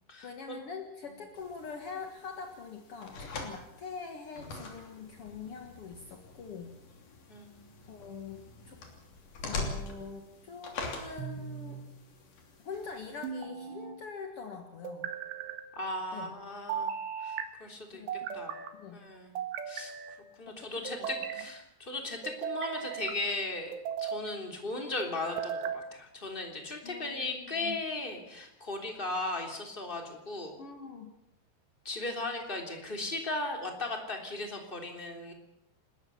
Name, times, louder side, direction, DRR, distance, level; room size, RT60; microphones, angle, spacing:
voice 1, 0.2-6.7 7.9-8.8 9.4-11.8 12.6-15.1 16.1-16.3 17.9-18.4 18.7-19.0 20.5-21.1 26.8-27.8 30.6-31.1, left 5 dB, 65° left, 3 dB, 1.4 m, -44 dB
sound 1, 1.3-13.3, left 3 dB, 50° left, 4.2 m, -44 dB
voice 2, 7.3-7.7 15.7-16.9 17.2-18.0 18.3-18.6 18.9-19.3 19.7-19.9 20.4-30.6 31.8-35.3, left 2 dB, 15° left, 2 dB, 2.8 m, -37 dB
sound 2, 11.2-11.9 13.2-14.0 14.8-15.6 16.7-17.5 18.1-18.7 19.4-20.2 20.9-21.5 22.2-23.2 23.7-24.3 25.0-25.8, right 8 dB, 75° right, 3.7 m, -37 dB
29.5 x 13.5 x 7.1 m, 0.82 s
omnidirectional pair, 5.2 m